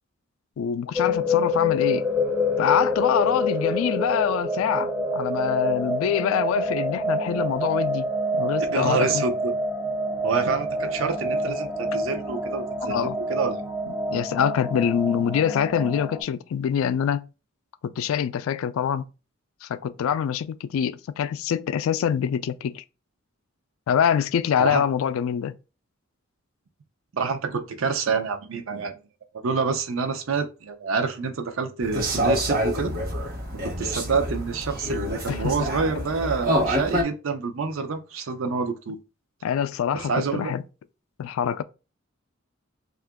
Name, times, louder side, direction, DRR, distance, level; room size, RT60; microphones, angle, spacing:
voice 1, 0.6-2.1 2.6-8.1 8.3-9.2 12.8-13.2 13.9-17.2 17.8-19.1 19.6-22.8 23.9-25.6 35.3-35.5 39.4-40.6 41.2-41.6, left 8 dB, 75° left, 0.3 m, -25 dB
sound 1, 0.9-16.2, left 1 dB, 10° right, 0.5 m, -27 dB
voice 2, 8.7-9.5 10.2-13.6 24.6-24.8 27.1-28.9 29.3-32.9 33.6-39.0 39.9-40.5, right 5 dB, 70° right, 0.5 m, -27 dB
sound 2, 31.8-37.0, equal, 45° right, 0.9 m, -27 dB
2.8 x 2.4 x 3.5 m
head